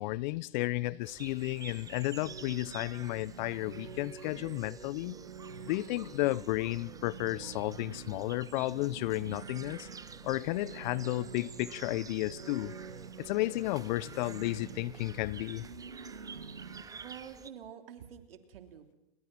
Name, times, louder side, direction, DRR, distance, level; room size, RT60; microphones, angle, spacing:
voice 1, 0.0-5.2 5.7-9.9 10.2-12.7 13.2-15.7, left 19 dB, 50° left, 0.8 m, -33 dB
sound 1, 1.0-17.5, right 5 dB, 10° right, 0.9 m, -50 dB
sound 2, 2.0-16.8, right 5 dB, 85° right, 2.2 m, -48 dB
voice 2, 16.9-18.9, right 8 dB, 70° right, 3.1 m, -48 dB
30.0 x 21.5 x 6.0 m
hypercardioid pair, 110°, 30 cm